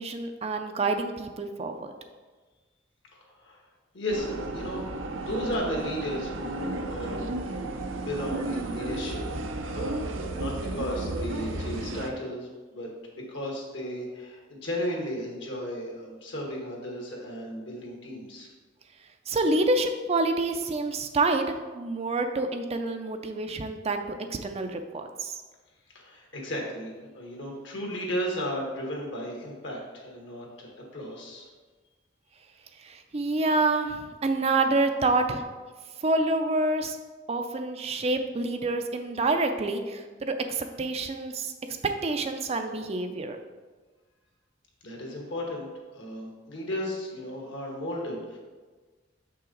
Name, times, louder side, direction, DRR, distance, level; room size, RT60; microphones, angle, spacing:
voice 1, 0.0-1.9 19.3-25.4 32.8-35.4 36.0-37.0 37.3-41.5 41.8-43.4, right 2 dB, 35° right, 6 dB, 0.5 m, -27 dB
voice 2, 3.1-3.6 3.9-9.2 9.6-12.9 13.1-18.5 25.9-31.5 44.8-48.4, equal, 65° left, -1 dB, 1.7 m, -35 dB
sound 1, 4.1-12.1, right 2 dB, 85° right, 0.6 m, -33 dB
6.7 x 5.7 x 3.9 m, 1.3 s
head